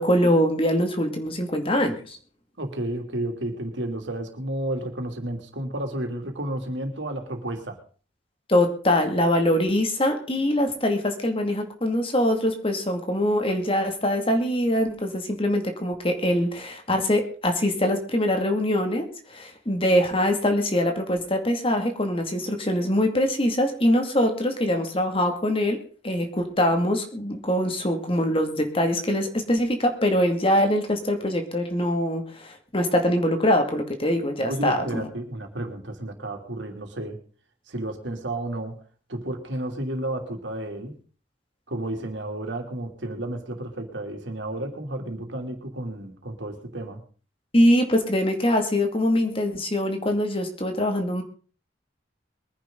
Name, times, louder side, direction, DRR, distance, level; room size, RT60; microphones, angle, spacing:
voice 1, 0.0-2.2 8.5-25.8 26.0-35.1 47.5-51.2, left 1 dB, 30° left, 5 dB, 2.3 m, -23 dB
voice 2, 2.6-7.8 34.5-37.2 37.7-38.8 39.1-41.0 41.7-47.0, right 1 dB, 85° right, 3 dB, 2.9 m, -32 dB
22.5 x 10.5 x 3.9 m, 0.40 s
head